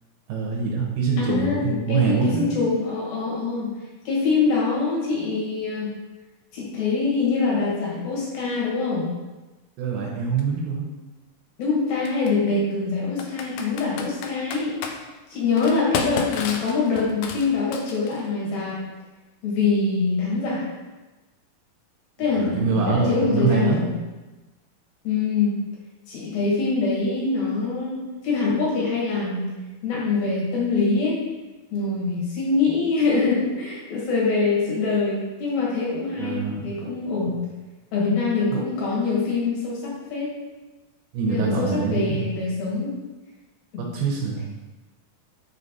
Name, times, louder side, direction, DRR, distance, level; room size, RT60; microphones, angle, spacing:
voice 1, 0.3-2.5 9.8-10.9 22.3-23.8 36.2-36.7 38.5-38.6 41.1-42.3 43.8-44.4, right 4 dB, 90° right, -2 dB, 2.8 m, -24 dB
voice 2, 1.2-3.7 4.0-5.9 6.5-9.1 11.6-14.8 15.3-18.8 19.4-20.7 22.2-23.9 25.0-25.5 26.1-29.5 29.8-31.2 31.7-37.4 37.9-40.3 41.3-42.9 43.7-43.9, left 4 dB, 70° left, -5 dB, 3.3 m, -24 dB
Computer keyboard, 10.4-10.5 12.1-12.3 13.2-15.0 15.6-18.3, left 6 dB, 90° left, 2.5 m, -31 dB
7.2 x 3.2 x 4.1 m, 1.1 s
omnidirectional pair, 4.4 m